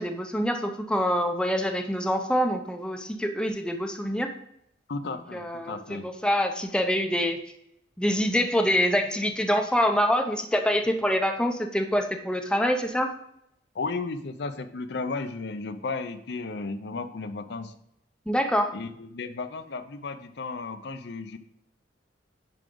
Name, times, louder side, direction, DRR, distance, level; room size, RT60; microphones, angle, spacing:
voice 1, 0.0-4.3 5.3-7.4 8.0-13.1 18.3-18.7, equal, 5° left, 4 dB, 0.6 m, -25 dB
voice 2, 4.9-6.1 13.7-17.7 18.7-21.4, left 3 dB, 65° left, 9 dB, 0.6 m, -34 dB
10.0 x 4.8 x 3.8 m, 0.75 s
head